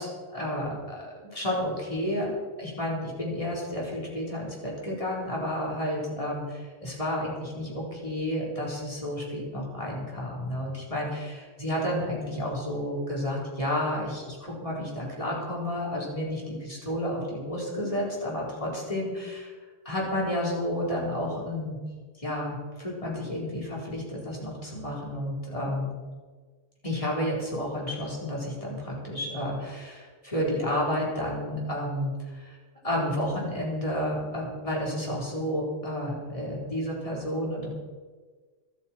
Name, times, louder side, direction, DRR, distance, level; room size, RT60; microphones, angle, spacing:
voice 1, 0.0-2.3 2.6-19.5 19.8-21.8 22.2-26.0 26.8-32.6 32.8-37.7, left 1 dB, 25° left, -4 dB, 4.3 m, -31 dB
25.0 x 8.8 x 4.5 m, 1.4 s
omnidirectional pair, 1.4 m